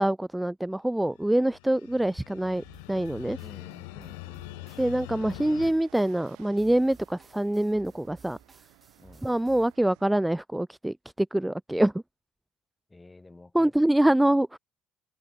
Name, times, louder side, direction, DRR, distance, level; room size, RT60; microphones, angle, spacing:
voice 1, 0.0-3.4 4.8-8.4 9.2-11.9 13.5-14.6, right 1 dB, 5° right, 0.4 m, -25 dB
sound 1, 1.2-5.7, left 26 dB, 80° left, 0.3 m, -43 dB
sound 2, 2.5-9.7, right 4 dB, 30° right, 5.3 m, -56 dB
voice 2, 3.4-4.7 9.0-9.4 12.9-14.1, left 2 dB, 15° left, 2.0 m, -51 dB
sound 3, 4.9-10.2, right 27 dB, 75° right, 3.2 m, -59 dB
open air
hypercardioid pair, 65°, 0 cm